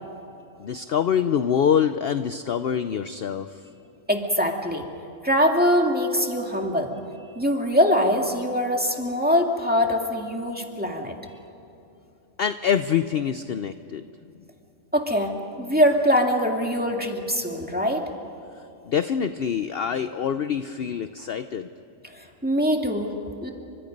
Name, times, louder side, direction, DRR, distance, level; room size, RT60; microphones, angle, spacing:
voice 1, 0.6-3.5 7.3-7.4 12.4-14.0 18.9-21.7, left 8 dB, 55° left, 11 dB, 0.8 m, -25 dB
voice 2, 4.1-4.9 5.2-6.9 7.4-11.1 14.9-18.0 22.1-23.5, equal, 5° right, 2 dB, 2.1 m, -23 dB
29.5 x 25.5 x 5.3 m, 2.9 s
omnidirectional pair, 1.4 m